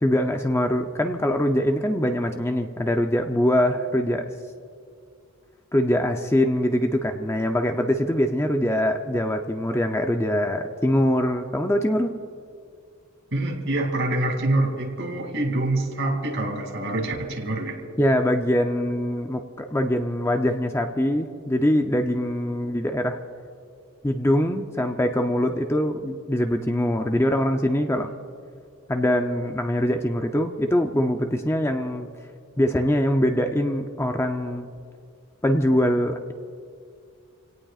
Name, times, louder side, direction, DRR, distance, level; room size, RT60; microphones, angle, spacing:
voice 1, 0.0-4.3 5.7-12.1 18.0-23.2 24.0-28.1 28.9-32.1 32.6-34.7 35.4-36.3, left 1 dB, 10° left, 4 dB, 0.6 m, -23 dB
voice 2, 13.3-17.8, right 2 dB, 60° right, 1 dB, 2.7 m, -25 dB
29.0 x 17.5 x 2.4 m, 2.3 s
head